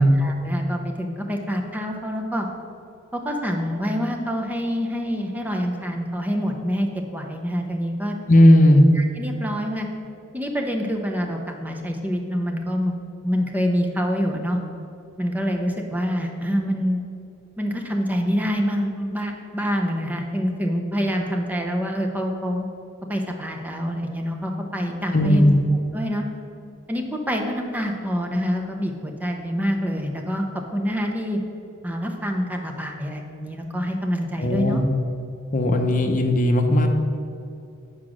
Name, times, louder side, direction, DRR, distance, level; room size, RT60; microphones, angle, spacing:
voice 1, 0.0-2.5 3.1-8.2 8.9-9.9 10.3-13.0 13.2-14.6 15.2-17.1 17.6-22.7 23.1-26.2 26.9-30.4 30.7-31.4 31.8-34.8, equal, 10° right, 2 dB, 0.6 m, -26 dB
voice 2, 8.3-8.9 25.1-25.5 34.4-34.8 35.5-36.9, left 1 dB, 40° left, 5 dB, 0.7 m, -16 dB
7.9 x 4.9 x 6.2 m, 2.5 s
head